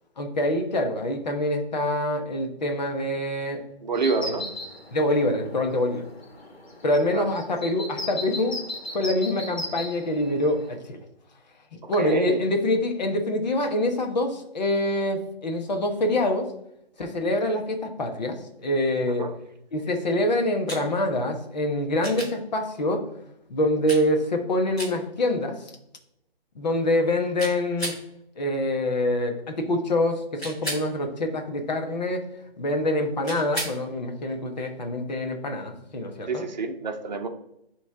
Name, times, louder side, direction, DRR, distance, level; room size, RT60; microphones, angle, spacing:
voice 1, 0.2-3.6 4.2-4.4 4.9-6.0 6.8-8.6 8.9-11.0 11.9-16.5 17.0-19.3 19.7-23.0 23.5-25.6 26.5-28.0 28.4-32.3 32.6-36.5, left 1 dB, 45° left, 4 dB, 1.1 m, -25 dB
voice 2, 3.8-4.5 7.1-7.3 11.8-12.4 19.2-19.3 36.3-37.3, right 4 dB, 45° right, 6 dB, 0.9 m, -27 dB
sound 1, 3.9-10.8, left 1 dB, 80° left, 1.8 m, -38 dB
sound 2, 20.7-20.8 22.0-22.3 23.9-24.0 24.8-24.9 27.4-28.0 30.4-30.9 33.2-33.8 36.0-36.1, right 1 dB, 5° left, 0.5 m, -33 dB
9.3 x 3.3 x 3.5 m, 0.79 s
figure-of-eight pair, 155°, 31 cm